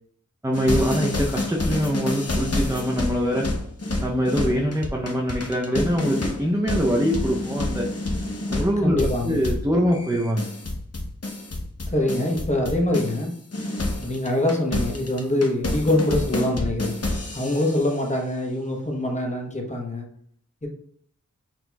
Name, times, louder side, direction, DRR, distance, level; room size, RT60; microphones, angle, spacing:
voice 1, 0.4-3.5 4.0-7.9 8.5-10.5, equal, 10° right, -1 dB, 0.5 m, -23 dB
sound 1, 0.5-13.3 13.5-17.9, left 2 dB, 50° left, 0.8 m, -28 dB
voice 2, 8.8-9.4 11.9-13.3 14.0-16.9 17.3-20.1 20.6-20.7, left 1 dB, 25° left, 0 dB, 0.9 m, -24 dB
6.0 x 2.9 x 2.3 m, 0.66 s
wide cardioid pair, 45°, 31 cm